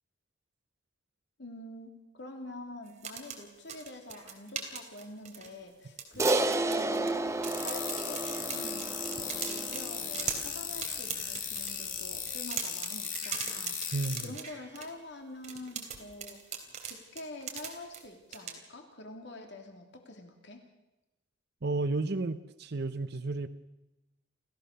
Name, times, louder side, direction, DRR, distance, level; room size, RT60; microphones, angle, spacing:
voice 1, 1.4-13.9 14.2-20.6, left 2 dB, 65° left, 4 dB, 3.0 m, -46 dB
sound 1, 2.9-5.7 6.0-7.2 7.4-11.8 12.2-14.9 15.4-18.0 18.3-18.5, right 7 dB, 40° right, 3.4 m, -39 dB
Crash cymbal, 6.2-10.8, right 2 dB, 15° right, 1.1 m, -32 dB
sound 2, 7.4-14.3, left 8 dB, 45° left, 2.8 m, -37 dB
voice 2, 13.9-14.3 21.6-23.5, right 3 dB, 60° right, 12 dB, 0.8 m, -32 dB
28.0 x 16.0 x 6.7 m, 0.99 s
head